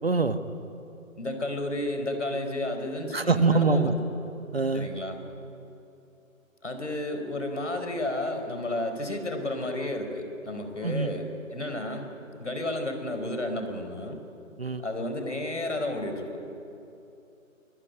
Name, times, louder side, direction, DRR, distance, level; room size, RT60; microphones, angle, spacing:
voice 1, 0.0-0.4 3.1-3.9 4.5-4.9 10.8-11.1 14.6-14.8, right 4 dB, 45° right, 9 dB, 1.5 m, -24 dB
voice 2, 1.2-3.9 4.7-5.2 6.6-12.1 12.4-14.2 14.8-16.3, left 1 dB, 55° left, 6 dB, 4.9 m, -32 dB
25.5 x 22.0 x 9.8 m, 2.8 s
figure-of-eight pair, 165°, 41 cm